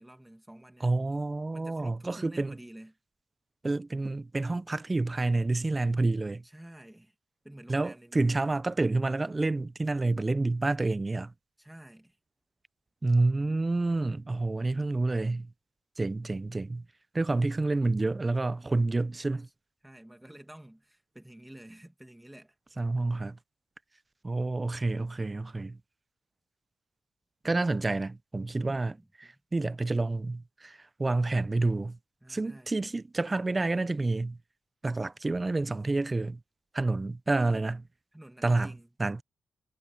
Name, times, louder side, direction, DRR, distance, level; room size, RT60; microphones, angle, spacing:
voice 1, 0.0-0.9 1.5-2.9 6.4-7.1 7.4-8.6 11.6-12.2 19.8-22.6 28.6-29.4 32.2-32.8 38.1-38.9, right 1 dB, 10° right, 2.2 m, -50 dB
voice 2, 0.8-2.5 3.6-6.4 7.7-11.3 13.0-15.5 16.0-16.8 17.1-19.5 22.8-23.4 24.2-25.8 27.4-28.9 29.2-32.0 32.3-34.4 34.8-36.4 36.7-37.8 38.4-38.7 39.0-39.2, right 2 dB, 25° right, 0.6 m, -28 dB
cardioid pair, 80°, 0 cm